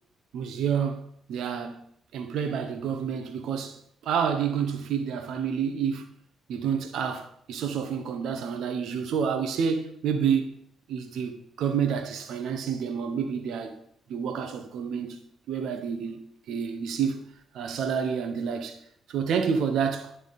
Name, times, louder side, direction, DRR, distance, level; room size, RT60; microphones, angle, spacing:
voice 1, 0.3-1.0 1.3-1.8 2.1-6.1 6.5-10.5 10.9-13.8 14.1-17.2 17.5-18.8 19.1-20.1, right 7 dB, 80° right, 0.8 m, -29 dB
10.5 x 3.6 x 4.1 m
supercardioid pair, 65°, 0 cm